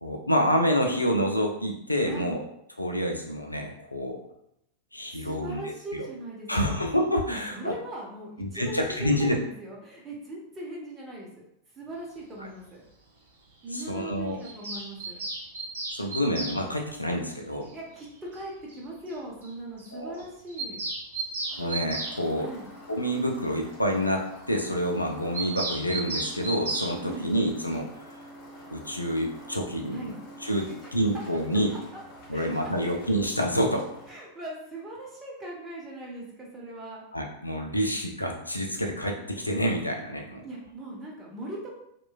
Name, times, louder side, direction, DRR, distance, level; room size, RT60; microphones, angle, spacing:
voice 1, 0.0-2.4 2.8-4.2 4.9-5.6 6.0-6.1 6.5-7.7 8.4-9.4 12.4-12.5 13.7-14.4 15.9-17.7 19.9-20.2 21.6-22.5 22.9-28.2 28.7-30.1 30.4-31.7 32.3-33.9 37.1-40.4, equal, 85° left, 2 dB, 0.4 m, -28 dB
voice 2, 2.0-2.4 5.1-6.8 7.3-11.5 11.8-12.8 13.6-15.2 17.7-20.8 22.4-22.7 27.0-27.3 29.9-30.2 30.8-30.9 32.3-32.5 32.8-32.9 34.1-37.0 40.4-41.7, right 1 dB, 20° right, -3 dB, 0.9 m, -40 dB
Bird vocalization bird call bird song, 14.4-16.6 18.0-18.1 18.4-18.5 18.7-18.8 19.1-19.2 19.4-19.5 19.8-19.9 20.2-22.2 25.3-26.9, right 3 dB, 65° right, 0.6 m, -33 dB
sound 1, 21.5-34.1, equal, 40° left, 1.5 m, -47 dB
2.9 x 2.2 x 2.2 m, 0.76 s
figure-of-eight pair, 90°, 0 cm